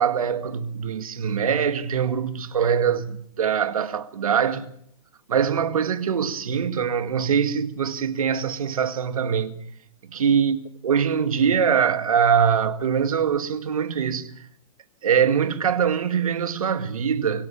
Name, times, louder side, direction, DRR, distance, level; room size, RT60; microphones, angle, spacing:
voice 1, 0.0-4.7 5.3-9.6 10.1-10.6 10.8-14.3 15.0-17.5, right 7 dB, 75° right, 2.0 m, -23 dB
24.5 x 16.5 x 7.2 m
hypercardioid pair, 125°, 19 cm